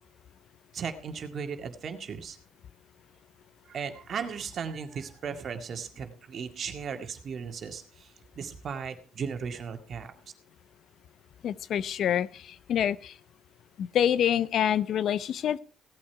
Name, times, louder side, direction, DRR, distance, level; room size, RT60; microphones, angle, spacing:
voice 1, 0.7-2.4 3.7-10.1, right 6 dB, 50° right, 7 dB, 2.0 m, -36 dB
voice 2, 11.4-13.1 13.8-15.6, left 9 dB, 60° left, 18 dB, 0.6 m, -26 dB
16.5 x 8.7 x 4.6 m, 0.37 s
supercardioid pair, 85°, 0 cm